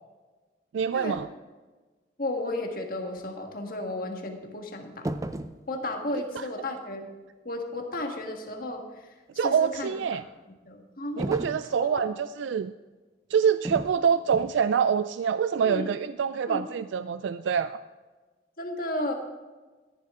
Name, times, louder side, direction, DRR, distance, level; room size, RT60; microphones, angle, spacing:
voice 1, 0.7-1.3 6.4-6.5 9.4-10.2 11.2-12.7 13.3-17.8, right 7 dB, 80° right, 13 dB, 0.3 m, -26 dB
voice 2, 2.2-5.1 5.7-7.1 7.4-10.2 10.7-11.3 11.9-12.2 15.6-15.9 16.5-16.6 18.6-19.1, left 1 dB, 50° left, 3 dB, 1.6 m, -33 dB
sound 1, 5.0-5.6 11.2-11.7 13.6-14.0 14.3-14.6, right 1 dB, 20° right, 0.4 m, -33 dB
13.5 x 11.0 x 3.7 m, 1.3 s
head